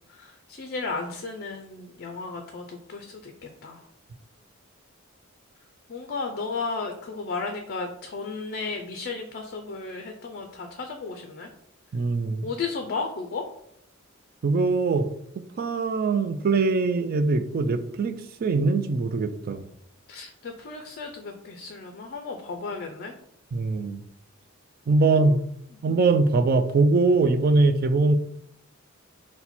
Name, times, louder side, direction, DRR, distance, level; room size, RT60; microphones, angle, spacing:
voice 1, 0.1-3.8 5.9-11.5 12.4-13.5 20.1-23.1 25.0-25.4 25.7-25.8, left 4 dB, 50° left, 4 dB, 0.4 m, -34 dB
voice 2, 11.9-12.5 14.4-15.1 15.4-18.1 18.4-19.6 23.5-24.0 24.9-25.4 25.8-28.2, right 3 dB, 45° right, 10 dB, 0.3 m, -22 dB
4.1 x 2.2 x 4.2 m, 0.72 s
head